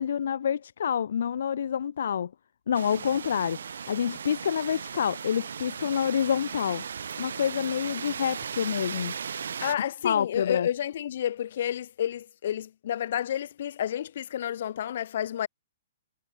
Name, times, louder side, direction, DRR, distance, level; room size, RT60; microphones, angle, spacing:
voice 1, 0.0-2.3 2.7-6.8 7.2-9.1 10.0-10.7, left 8 dB, 65° left, 1.1 m, -27 dB
sound 1, 2.7-9.7, right 7 dB, 90° right, 4.6 m, -37 dB
voice 2, 9.6-15.5, left 10 dB, 50° left, 2.0 m, -30 dB
hypercardioid pair, 170°, 0 cm